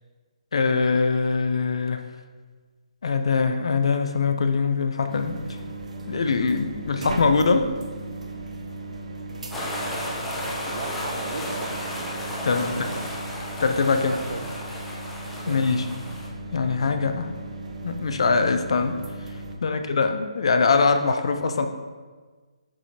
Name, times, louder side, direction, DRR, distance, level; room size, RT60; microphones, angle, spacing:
voice 1, 0.5-2.0 3.0-5.6 6.1-7.7 12.4-12.9 13.6-14.2 15.4-15.9 16.5-17.3 17.8-19.0 19.6-21.7, left 4 dB, 50° left, 7 dB, 0.5 m, -22 dB
sound 1, 5.1-19.6, right 2 dB, 80° right, 0.9 m, -37 dB
voice 2, 9.3-10.4 10.7-11.7 12.6-13.0 13.8-14.5 15.4-15.7 19.7-19.8, right 4 dB, 45° right, 7 dB, 0.5 m, -38 dB
sound 2, 9.5-16.3, left 1 dB, 5° left, 0.4 m, -33 dB
7.4 x 4.8 x 2.8 m, 1.4 s
hypercardioid pair, 175°, 4 cm